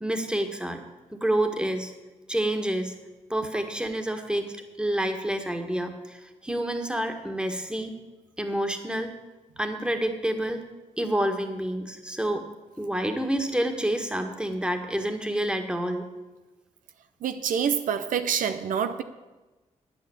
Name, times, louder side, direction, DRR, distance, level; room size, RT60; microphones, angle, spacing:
voice 1, 0.0-0.8 1.2-1.9 2.3-3.0 3.3-7.9 8.4-9.1 9.6-10.6 11.0-12.5 12.8-16.1, right 1 dB, 5° right, 5 dB, 1.7 m, -28 dB
voice 2, 17.2-19.0, right 7 dB, 85° right, 9 dB, 0.7 m, -26 dB
9.8 x 8.8 x 8.1 m, 1.1 s
cardioid pair, 60°, 13 cm